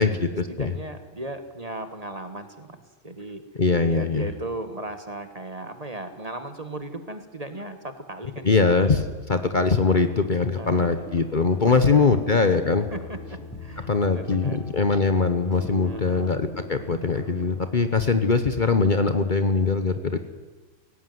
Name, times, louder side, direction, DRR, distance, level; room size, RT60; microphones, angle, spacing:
voice 1, 0.0-2.8 3.0-3.4 3.9-8.6 10.5-11.1 11.5-12.1 12.9-14.7 15.8-16.3, right 2 dB, 30° right, 9 dB, 1.5 m, -37 dB
voice 2, 3.6-4.2 8.4-9.0 9.3-12.8 13.9-20.2, left 4 dB, 40° left, 9 dB, 1.1 m, -21 dB
sound 1, 9.4-17.7, left 1 dB, 15° left, 6.8 m, -41 dB
18.0 x 17.5 x 9.4 m, 1.3 s
omnidirectional pair, 1.4 m